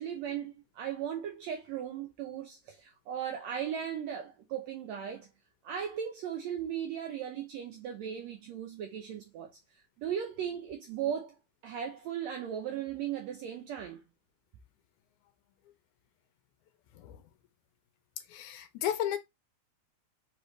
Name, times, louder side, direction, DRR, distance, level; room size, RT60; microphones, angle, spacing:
voice 1, 0.0-5.3 5.6-9.6 10.0-11.3 11.6-14.0, right 9 dB, 80° right, 1.6 m, -37 dB
voice 2, 18.3-19.2, left 11 dB, 80° left, 1.9 m, -33 dB
4.8 x 3.2 x 3.0 m
omnidirectional pair, 3.7 m